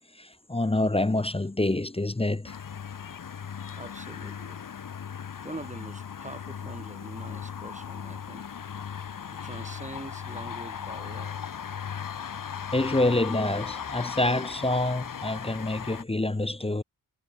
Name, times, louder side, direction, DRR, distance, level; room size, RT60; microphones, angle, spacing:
voice 1, 0.1-2.5 12.7-16.8, left 2 dB, 15° left, 0.6 m, -27 dB
sound 1, 2.4-16.0, left 7 dB, 55° left, 0.7 m, -37 dB
voice 2, 3.8-4.6 5.4-8.5 9.3-11.6, right 2 dB, 20° right, 2.0 m, -43 dB
wide cardioid pair, 65°, 39 cm